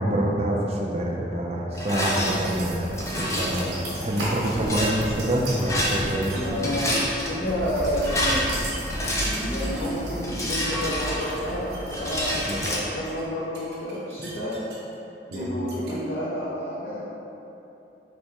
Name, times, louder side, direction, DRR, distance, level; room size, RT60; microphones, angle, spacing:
voice 1, 0.0-2.9 3.1-6.3 6.6-6.7 12.5-12.6 15.3-15.5, right 1 dB, 35° right, -2 dB, 0.5 m, -26 dB
Rattle, 1.7-2.4 3.0-3.6 4.5-4.9 5.6-6.3 6.5-7.3 7.8-9.6 10.2-11.5 11.9-12.8, left 1 dB, 15° left, 0.5 m, -28 dB
sound 1, 1.9-12.7, equal, 85° right, 1.2 m, -34 dB
sound 2, 2.4-2.5 3.0-3.2 3.5-5.6 5.9-6.4 6.7-7.2 7.8-9.9 10.3-11.4 11.7-13.2 13.5-14.9 15.3-15.4 15.7-15.9, right 3 dB, 60° right, 0.8 m, -45 dB
voice 2, 6.3-8.4 9.2-12.4 12.7-14.6 15.3-17.0, equal, 70° left, -10 dB, 0.8 m, -30 dB
4.2 x 3.2 x 3.3 m, 2.9 s
head